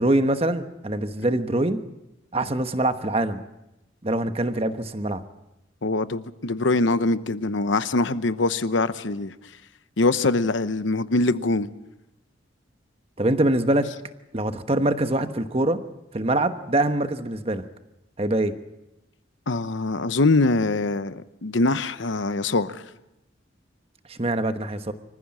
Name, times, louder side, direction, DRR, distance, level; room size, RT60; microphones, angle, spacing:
voice 1, 0.0-1.8 2.3-3.4 4.0-5.2 13.2-13.9 14.3-15.8 16.1-17.6 18.2-18.5 24.1-24.9, right 1 dB, 30° right, 1.1 m, -24 dB
voice 2, 5.8-9.3 10.0-11.7 19.5-22.8, left 2 dB, 75° left, 0.9 m, -23 dB
25.5 x 15.0 x 7.6 m
head